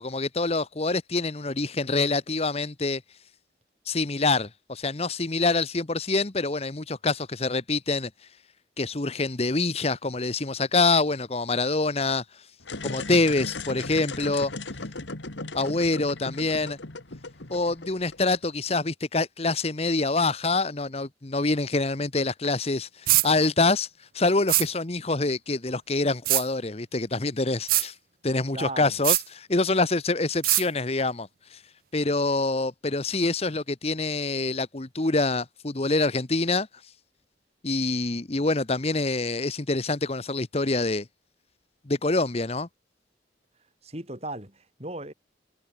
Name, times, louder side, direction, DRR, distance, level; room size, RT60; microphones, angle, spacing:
voice 1, 0.0-3.0 3.9-8.1 8.8-12.2 12.8-14.5 15.5-16.8 17.5-23.9 24.1-27.9 28.2-31.6 31.9-36.7 37.6-41.0 41.9-42.7, left 3 dB, 35° left, 1.1 m, -26 dB
sound 1, 12.6-18.5, left 3 dB, 80° left, 2.2 m, -37 dB
sound 2, 23.1-23.3 24.5-24.7 26.3-26.4 27.7-27.9 29.0-29.2 30.4-30.6, right 18 dB, 50° right, 0.4 m, -21 dB
voice 2, 28.5-29.0 43.8-45.1, right 2 dB, 35° right, 6.5 m, -36 dB
head